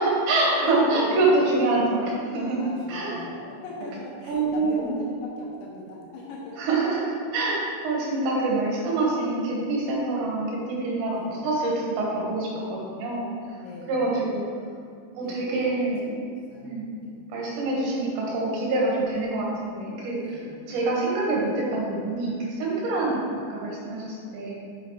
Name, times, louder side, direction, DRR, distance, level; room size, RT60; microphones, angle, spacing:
voice 1, 0.0-3.2 3.8-4.0 4.3-4.9 6.6-13.6 13.9-14.5 15.2-16.2 16.6-16.9 17.3-23.3 23.5-24.6, right 2 dB, 70° right, -4 dB, 3.6 m, -26 dB
voice 2, 0.6-1.5 2.6-6.6 11.1-11.4 13.6-14.1 15.2-15.8 16.5-17.2 20.2-20.7 23.0-23.2, left 3 dB, 75° left, -4 dB, 3.1 m, -40 dB
7.9 x 7.1 x 3.2 m, 2.4 s
omnidirectional pair, 5.7 m